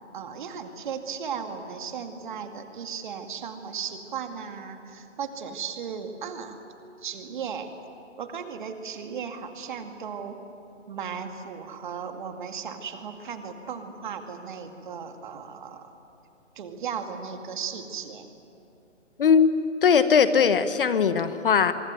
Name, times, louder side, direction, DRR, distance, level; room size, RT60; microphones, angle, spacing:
voice 1, 0.1-6.6 7.0-7.7 8.2-10.4 10.9-15.9 16.6-18.3, right 6 dB, 40° right, 6 dB, 2.3 m, -36 dB
voice 2, 19.2-21.7, left 6 dB, 45° left, 12 dB, 1.2 m, -20 dB
24.5 x 24.5 x 9.3 m, 2.7 s
figure-of-eight pair, 150°, 37 cm